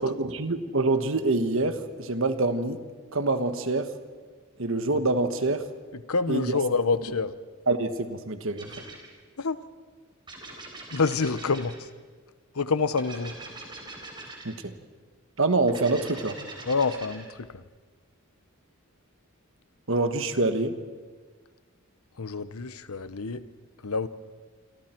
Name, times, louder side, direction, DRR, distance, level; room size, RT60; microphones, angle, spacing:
voice 1, 0.0-2.8 3.1-3.9 4.6-5.7 6.3-6.6 7.7-8.7 14.4-14.7 15.4-16.4 19.9-20.8, right 2 dB, 60° right, 9 dB, 1.4 m, -26 dB
voice 2, 6.1-7.3 9.4-9.6 10.9-11.7 12.6-13.3 16.7-17.6 22.2-23.4 23.8-24.1, left 4 dB, 80° left, 13 dB, 0.9 m, -27 dB
sound 1, 8.6-9.1 10.3-11.9 13.0-14.6 15.7-17.3, right 2 dB, 20° right, 4.1 m, -43 dB
27.5 x 25.5 x 4.6 m, 1.5 s
head